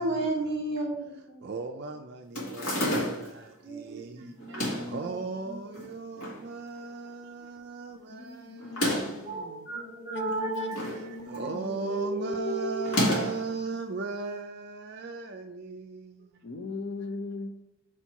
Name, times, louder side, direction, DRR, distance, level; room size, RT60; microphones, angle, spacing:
voice 1, 0.0-1.4 3.6-5.6 9.2-13.0, right 2 dB, 20° right, -5 dB, 1.7 m, -34 dB
voice 2, 1.4-9.7 11.2-16.4, right 4 dB, 50° right, 4 dB, 0.4 m, -38 dB
sound 1, 2.3-3.4 4.4-5.0 5.7-6.4 6.8-6.9 7.0-7.1 8.6-9.2 10.3-11.0 11.3-11.7 12.8-13.5, equal, 85° left, 2.1 m, -30 dB
voice 3, 8.1-9.0 9.7-11.9 16.4-17.5, left 1 dB, 50° left, 7 dB, 0.6 m, -38 dB
4.4 x 4.4 x 5.7 m, 0.86 s
head